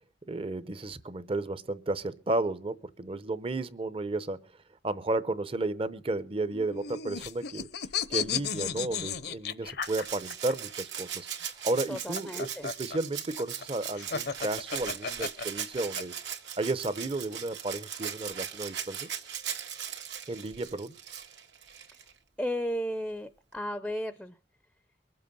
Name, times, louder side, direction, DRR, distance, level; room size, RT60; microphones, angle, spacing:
voice 1, 0.3-4.5 4.8-7.7 8.1-11.3 11.6-16.1 16.6-19.1 20.3-20.9, right 2 dB, 30° right, 0.7 m, -33 dB
sound 1, 6.5-10.5 11.8-16.0, left 7 dB, 60° left, 0.8 m, -34 dB
Rattle (instrument), 9.8-22.1 23.5-23.6, right 9 dB, 80° right, 2.0 m, -39 dB
voice 2, 11.9-12.7 22.4-24.4, equal, 5° left, 0.6 m, -34 dB
23.0 x 7.8 x 5.4 m
head